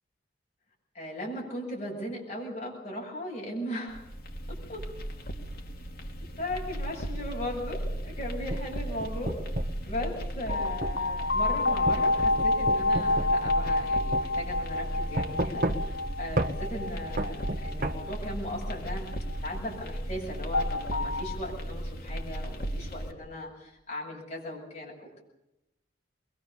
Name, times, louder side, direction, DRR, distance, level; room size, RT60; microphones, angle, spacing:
voice 1, 0.9-4.0 4.7-4.8 6.4-9.3 9.8-19.1 19.4-25.2, left 1 dB, 40° left, -2 dB, 7.9 m, -37 dB
sound 1, 3.9-23.1, right 1 dB, 55° left, 2.8 m, -36 dB
sound 2, 8.2-9.8 10.8-11.0 11.9-13.9 14.1-14.3 15.2-16.0 16.4-16.6 17.2-18.0, right 1 dB, 50° right, 1.2 m, -31 dB
sound 3, 10.5-19.6 20.5-21.2, left 2 dB, 80° left, 1.9 m, -29 dB
22.5 x 22.5 x 7.2 m, 0.89 s
head